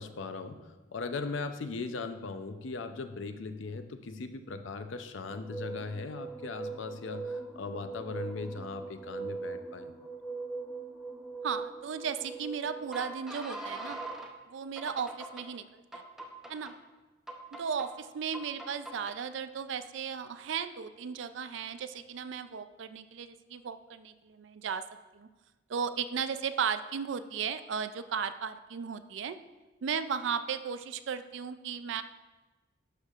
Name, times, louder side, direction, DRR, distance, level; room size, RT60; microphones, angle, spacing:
voice 1, 0.0-9.9, left 4 dB, 75° left, 9 dB, 0.6 m, -39 dB
sound 1, 5.3-14.3 14.8-15.4 15.9-16.7 17.3-17.9 18.3-19.1, right 3 dB, ahead, 0.6 m, -41 dB
voice 2, 11.4-14.0 14.5-16.0 16.5-16.7 17.5-24.8 25.1-25.3 25.7-29.4 29.8-32.0, right 6 dB, 70° right, 11 dB, 0.4 m, -35 dB
11.5 x 6.6 x 2.4 m, 1.2 s
head